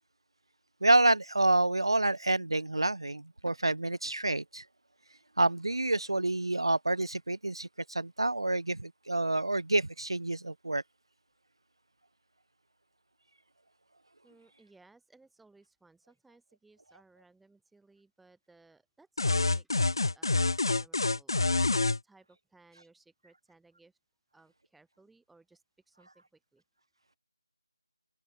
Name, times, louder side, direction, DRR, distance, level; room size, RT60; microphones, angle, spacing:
voice 1, 0.8-4.6 5.4-10.8, right 2 dB, 65° right, 0.7 m, -28 dB
voice 2, 14.2-24.0 24.3-26.6, right 3 dB, ahead, 5.9 m, -62 dB
sound 1, 19.2-22.0, left 3 dB, 55° left, 0.4 m, -27 dB
figure-of-eight pair, 160°, 3 cm